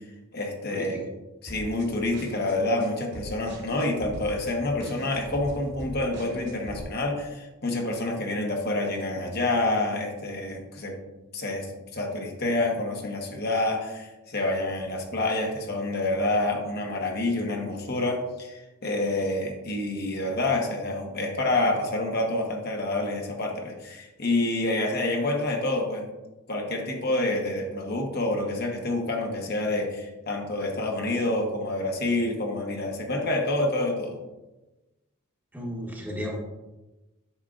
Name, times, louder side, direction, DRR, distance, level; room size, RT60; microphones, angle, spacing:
voice 1, 0.3-1.1 1.4-11.0 11.3-26.1 26.5-34.2, left 2 dB, 45° left, 1 dB, 1.1 m, -28 dB
sound 1, 1.5-6.8, equal, 55° right, 1.4 m, -41 dB
voice 2, 35.5-36.4, equal, 10° right, -2 dB, 1.1 m, -33 dB
8.6 x 6.3 x 2.5 m, 1.1 s
head